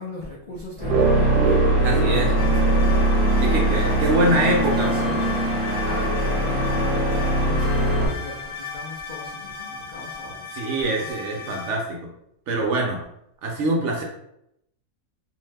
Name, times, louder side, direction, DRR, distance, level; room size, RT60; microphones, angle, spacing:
voice 1, 0.0-10.5 10.8-11.7, left 2 dB, 80° left, -5 dB, 0.4 m, -38 dB
sound 1, 0.8-8.1, right 1 dB, 5° right, 0.9 m, -21 dB
sound 2, 0.9-5.5, right 5 dB, 90° right, 1.1 m, -28 dB
voice 2, 1.8-2.3 3.4-5.1 10.5-12.1 12.5-13.0 13.4-14.0, right 2 dB, 65° right, 0 dB, 0.7 m, -24 dB
sound 3, 2.4-11.7, left 4 dB, 65° left, 1.0 m, -36 dB
2.7 x 2.1 x 3.2 m, 0.77 s
omnidirectional pair, 1.5 m